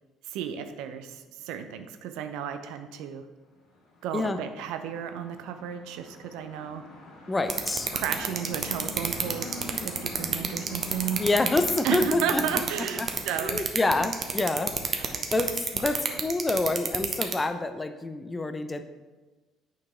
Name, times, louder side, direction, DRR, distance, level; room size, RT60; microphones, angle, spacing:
voice 1, 0.2-3.3 4.0-6.8 7.9-11.2 11.8-13.7 15.0-15.2 16.1-16.2, right 8 dB, 65° right, 8 dB, 0.5 m, -33 dB
sound 1, 3.8-13.4, left 1 dB, 65° left, 1.8 m, -43 dB
voice 2, 7.3-7.9 11.2-12.4 13.0-13.1 13.3-18.8, left 2 dB, 20° left, 9 dB, 0.6 m, -27 dB
sound 2, 7.5-17.3, right 6 dB, 40° right, 0.8 m, -27 dB
8.4 x 4.6 x 3.7 m, 1.2 s
figure-of-eight pair, 55°, 0 cm